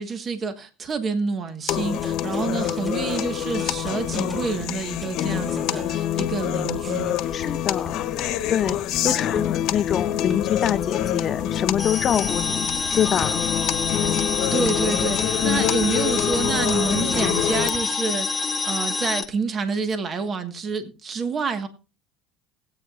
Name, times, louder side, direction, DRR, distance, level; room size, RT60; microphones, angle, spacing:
voice 1, 0.0-7.5 9.0-9.2 14.1-21.7, right 4 dB, 35° right, 1.5 m, -28 dB
sound 1, 1.7-17.7, left 11 dB, 65° left, 1.1 m, -26 dB
sound 2, 1.9-8.3 8.7-10.0 10.3-17.8, right 1 dB, 10° right, 5.8 m, -40 dB
voice 2, 7.3-8.0 8.5-8.8 9.0-13.4 15.5-15.7, left 9 dB, 45° left, 0.6 m, -25 dB
sound 3, 11.8-19.2, left 4 dB, 20° left, 1.2 m, -27 dB
19.5 x 8.8 x 2.5 m
supercardioid pair, 95°, 0 cm